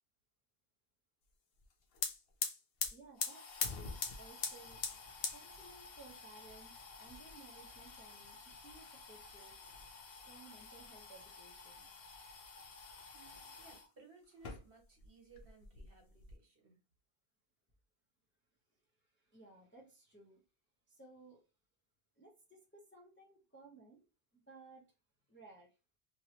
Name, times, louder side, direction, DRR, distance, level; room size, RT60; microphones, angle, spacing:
sound 1, 1.6-1.7 1.9-13.9 14.3-15.1 15.3-16.3, left 5 dB, 65° left, 0.9 m, -45 dB
voice 1, 2.9-4.8 5.3-8.4 8.6-9.6 10.1-11.9 19.2-20.4 20.9-21.4 22.2-24.0 24.3-24.9 25.3-25.7, right 3 dB, 10° left, 0.6 m, -59 dB
voice 2, 13.1-16.8, right 4 dB, 55° right, 1.4 m, -61 dB
3.1 x 2.7 x 2.9 m
omnidirectional pair, 1.1 m